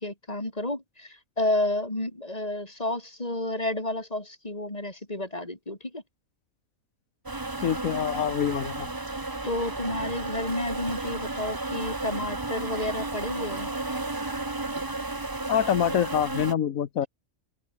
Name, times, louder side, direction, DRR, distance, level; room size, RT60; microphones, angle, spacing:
voice 1, 0.0-6.0 9.4-13.7, left 1 dB, 30° left, 4.4 m, -31 dB
sound 1, 7.3-16.5, right 2 dB, 15° right, 1.2 m, -33 dB
voice 2, 7.6-8.9 15.5-17.1, left 9 dB, 90° left, 1.4 m, -25 dB
open air
omnidirectional pair, 1.4 m